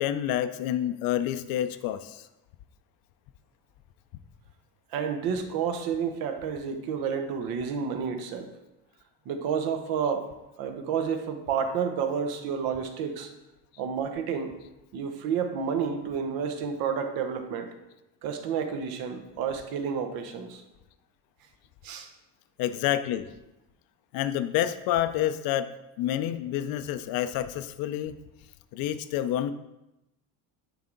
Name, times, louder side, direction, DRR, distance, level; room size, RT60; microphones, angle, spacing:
voice 1, 0.0-2.3 22.6-23.3 24.1-25.7 26.0-28.2 28.7-29.5, left 11 dB, 65° left, 12 dB, 0.5 m, -28 dB
voice 2, 4.9-8.5 9.3-10.2 10.6-13.3 13.8-14.5 14.9-17.7 18.2-20.6 21.8-22.1, right 6 dB, 65° right, 6 dB, 1.0 m, -30 dB
9.0 x 3.4 x 3.9 m, 0.94 s
supercardioid pair, 110°, 39 cm